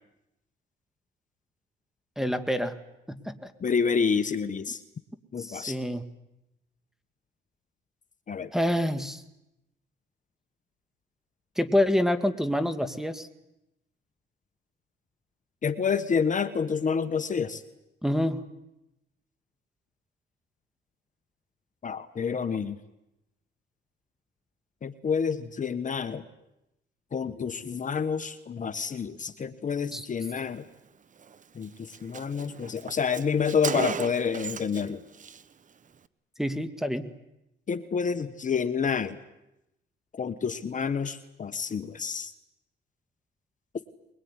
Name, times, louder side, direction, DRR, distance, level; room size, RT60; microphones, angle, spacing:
voice 1, 2.2-2.8 3.1-3.5 5.4-6.1 8.5-9.2 11.6-13.3 18.0-18.5 29.9-30.1 36.4-37.1, left 1 dB, ahead, 10 dB, 1.9 m, -27 dB
voice 2, 3.6-4.8 5.3-5.8 8.3-8.5 15.6-17.6 21.8-22.7 24.8-26.2 27.1-30.6 31.5-35.0 37.7-39.2 40.1-42.3, left 6 dB, 40° left, 11 dB, 1.3 m, -28 dB
Car, 31.2-31.4 31.6-31.7 31.9-34.9 35.1-35.4, right 6 dB, 40° right, 1.1 m, -35 dB
22.5 x 22.0 x 9.7 m, 0.89 s
cardioid pair, 90°, 20 cm